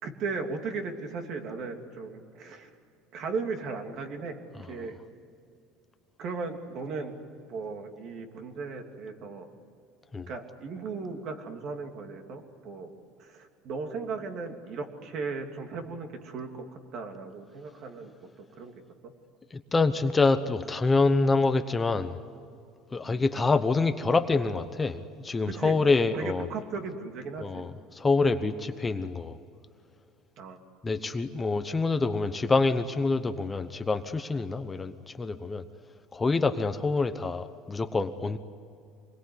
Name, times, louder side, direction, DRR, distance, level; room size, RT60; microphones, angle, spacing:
voice 1, 0.0-2.7 3.1-5.0 6.2-7.1 7.5-9.5 10.3-12.9 13.2-18.1 18.4-18.7 23.1-23.2 25.5-25.8 26.1-27.6 30.4-30.6, right 4 dB, 50° right, 5 dB, 2.9 m, -36 dB
voice 2, 19.5-22.2 22.9-26.5 27.4-29.4 30.8-35.6 36.1-38.4, left 3 dB, 15° left, 9 dB, 1.0 m, -26 dB
27.0 x 21.5 x 9.7 m, 2.4 s
cardioid pair, 135°, 0 cm